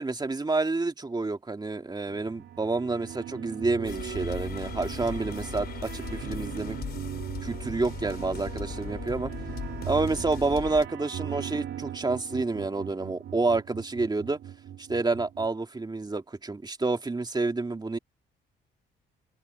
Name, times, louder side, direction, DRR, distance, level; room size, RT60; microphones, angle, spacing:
voice 1, 0.0-6.8 7.4-9.3 9.8-14.4 14.8-18.0, right 3 dB, 20° right, 2.4 m, -29 dB
sound 1, 2.1-15.5, right 10 dB, 70° right, 2.6 m, -39 dB
sound 2, 3.9-10.9, left 7 dB, 55° left, 3.1 m, -38 dB
cardioid pair, 90°, 20 cm